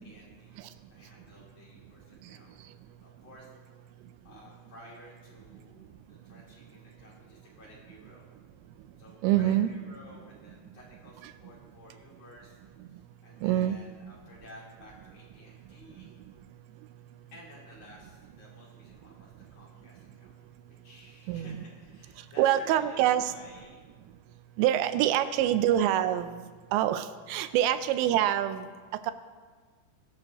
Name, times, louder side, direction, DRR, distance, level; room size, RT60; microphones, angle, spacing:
voice 1, 0.0-2.6 3.0-3.5 4.2-8.3 9.0-12.6 12.9-16.1 17.3-20.4 20.6-23.8 24.8-25.6 27.6-27.8, left 1 dB, 40° left, -4 dB, 3.5 m, -53 dB
voice 2, 9.2-9.7 11.2-11.3 13.4-13.8 15.9-16.0 21.3-21.6 22.2-23.3 24.6-26.4 26.7-28.7 29.0-29.1, right 12 dB, 85° right, 12 dB, 2.8 m, -26 dB
21.5 x 11.5 x 2.9 m, 1.5 s
omnidirectional pair, 5.2 m